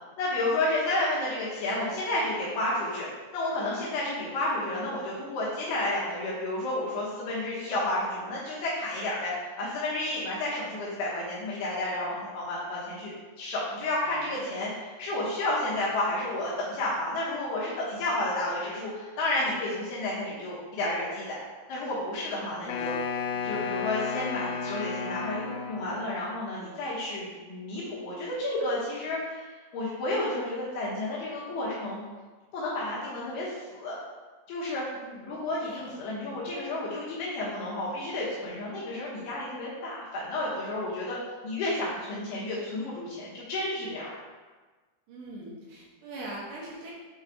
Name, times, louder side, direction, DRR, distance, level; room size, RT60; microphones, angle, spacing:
voice 1, 0.2-3.1 3.3-21.4 21.7-23.0 23.4-32.0 32.5-34.0 34.5-34.8 35.2-41.2 41.4-44.2, left 1 dB, 70° left, -7 dB, 2.6 m, -31 dB
voice 2, 14.0-14.7 15.0-15.1 22.2-22.9 23.3-23.7 34.9-35.9 36.2-36.5 45.1-46.9, right 1 dB, 70° right, -5 dB, 3.0 m, -44 dB
Wind instrument woodwind instrument, 22.7-26.1, left 5 dB, 90° left, 3.1 m, -33 dB
7.8 x 3.2 x 4.7 m, 1.3 s
omnidirectional pair, 5.5 m